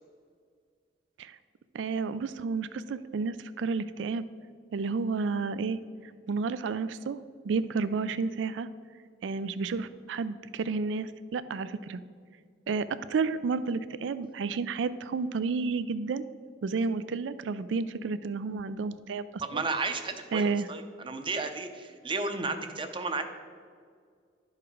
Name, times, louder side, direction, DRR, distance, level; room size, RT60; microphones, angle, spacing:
voice 1, 1.7-4.2 4.7-5.8 6.3-7.2 7.4-8.7 9.2-12.0 12.7-16.2 16.6-19.6 20.3-20.7, right 4 dB, 80° right, 14 dB, 0.4 m, -31 dB
voice 2, 19.4-23.2, right 3 dB, 30° right, 7 dB, 0.7 m, -33 dB
11.5 x 4.8 x 5.0 m, 2.1 s
head